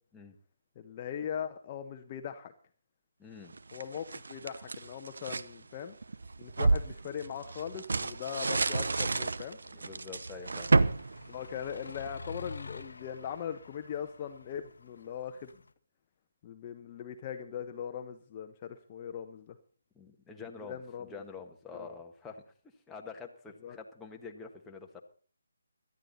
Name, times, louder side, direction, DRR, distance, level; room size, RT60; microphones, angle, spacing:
voice 1, 0.8-2.5 3.7-6.0 6.4-9.6 11.3-15.5 16.4-19.6 20.7-21.1 21.7-21.9 23.6-23.8, left 8 dB, 30° left, 6 dB, 0.9 m, -40 dB
voice 2, 3.2-3.6 9.7-11.0 19.9-22.5 22.9-25.0, left 4 dB, 10° left, 1 dB, 1.4 m, -47 dB
sound 1, 3.5-5.5 6.0-12.1, right 3 dB, 70° right, 0.8 m, -31 dB
sound 2, 8.2-15.7, left 3 dB, 70° left, 1.1 m, -49 dB
18.5 x 12.0 x 4.1 m, 0.42 s
figure-of-eight pair, 150°, 0 cm